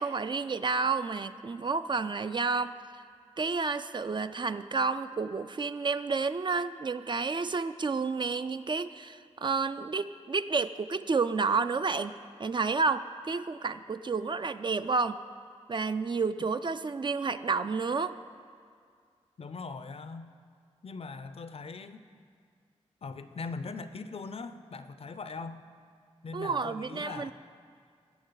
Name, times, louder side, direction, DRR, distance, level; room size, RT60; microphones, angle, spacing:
voice 1, 0.0-2.7 3.4-15.2 15.7-18.2 26.3-27.3, right 4 dB, 40° right, 11 dB, 0.3 m, -30 dB
voice 2, 19.4-20.3 20.8-22.0 23.0-25.6 26.2-27.3, left 4 dB, 55° left, 11 dB, 0.5 m, -40 dB
15.5 x 6.2 x 3.9 m, 2.1 s
cardioid pair, 45°, 12 cm